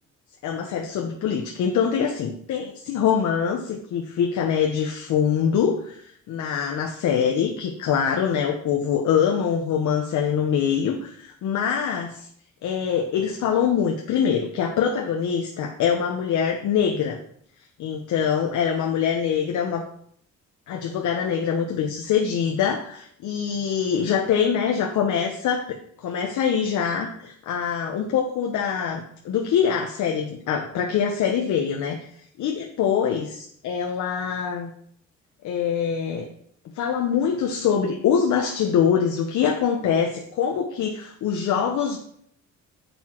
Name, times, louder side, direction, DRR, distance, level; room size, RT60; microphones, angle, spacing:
voice 1, 0.4-12.3 12.6-17.2 17.8-19.9 20.7-32.1 32.4-33.3 33.6-34.7 35.4-36.3 36.8-42.0, left 7 dB, 75° left, 3 dB, 0.9 m, -24 dB
7.0 x 6.0 x 4.4 m, 0.65 s
cardioid pair, 90°, 30 cm